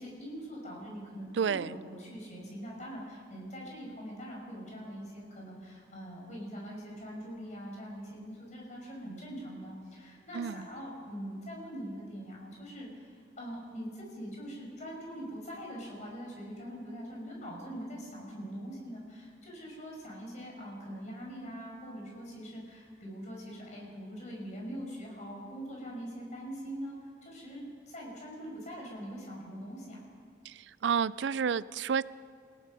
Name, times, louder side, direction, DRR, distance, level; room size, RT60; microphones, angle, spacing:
voice 1, 0.0-30.0, equal, 40° left, -2 dB, 6.1 m, -43 dB
voice 2, 1.4-1.7 10.3-10.7 30.4-32.0, right 6 dB, 80° right, 19 dB, 0.4 m, -30 dB
28.5 x 17.0 x 5.4 m, 2.1 s
head